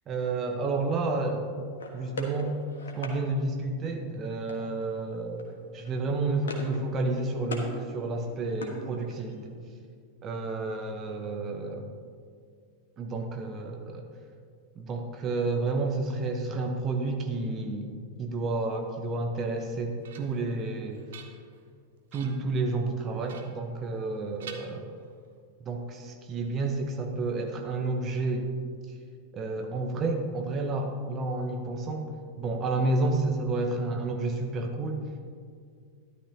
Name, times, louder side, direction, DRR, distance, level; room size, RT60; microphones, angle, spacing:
voice 1, 0.1-1.5 1.9-2.5 2.9-9.6 10.2-11.9 13.0-14.1 14.7-17.9 18.2-21.1 22.1-24.9 25.6-28.5 29.3-32.1 32.4-35.0, right 3 dB, 30° right, 3 dB, 1.0 m, -30 dB
sound 1, 1.8-3.2 4.5-4.9 5.2-5.4 5.7-6.8 7.1-7.7 8.1-9.4, left 2 dB, 65° left, 1.4 m, -40 dB
sound 2, 19.5-20.5 20.9-21.7 22.1-22.5 23.3-24.1 24.4-25.4, right 7 dB, 60° right, 0.9 m, -49 dB
13.0 x 11.5 x 2.9 m, 2.1 s
figure-of-eight pair, 90°, 0 cm